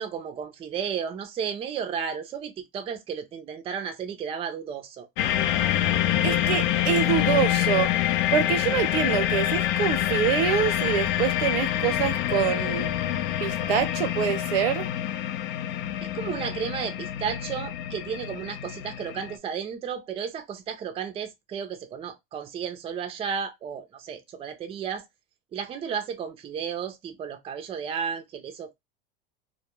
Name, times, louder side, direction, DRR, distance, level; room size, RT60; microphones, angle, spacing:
voice 1, 0.0-5.1 16.0-25.0 25.5-28.7, right 7 dB, 20° right, 0.4 m, -33 dB
sound 1, 5.2-19.4, left 12 dB, 65° left, 0.5 m, -26 dB
voice 2, 6.2-7.9 8.3-12.9 13.4-14.9, right 9 dB, 80° right, 0.7 m, -26 dB
2.2 x 2.1 x 2.9 m
supercardioid pair, 115°, 29 cm